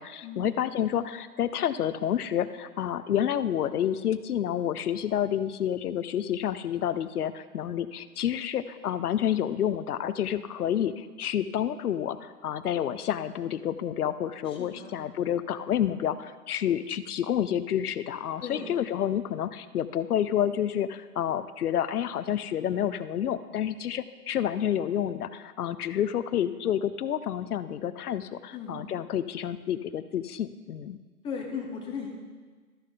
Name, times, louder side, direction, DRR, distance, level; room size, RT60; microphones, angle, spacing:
voice 1, 0.0-31.0, left 10 dB, 70° left, 14 dB, 0.7 m, -29 dB
voice 2, 14.5-14.9 18.4-18.7 28.5-28.8 31.2-32.1, left 5 dB, 10° left, 1 dB, 1.0 m, -37 dB
13.5 x 6.7 x 3.9 m, 1.4 s
hypercardioid pair, 135°, 47 cm